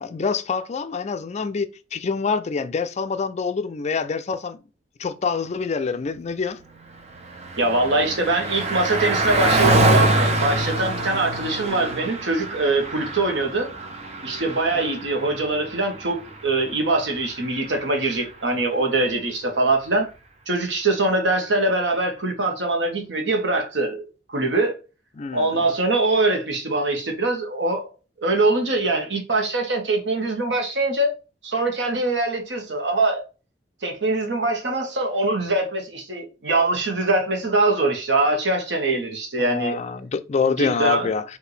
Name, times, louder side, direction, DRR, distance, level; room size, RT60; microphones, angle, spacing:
voice 1, 0.0-4.6 5.0-6.6 14.7-14.9 25.2-25.7 39.4-41.2, left 5 dB, 40° left, 0.4 m, -26 dB
Car passing by, 6.7-18.4, right 1 dB, 35° right, 0.7 m, -25 dB
voice 2, 7.6-13.7 14.2-20.1 20.5-24.8 25.3-27.9 28.2-31.1 31.4-33.2 33.8-39.8 40.5-41.1, right 2 dB, 90° right, 1.2 m, -23 dB
4.9 x 2.7 x 3.2 m
head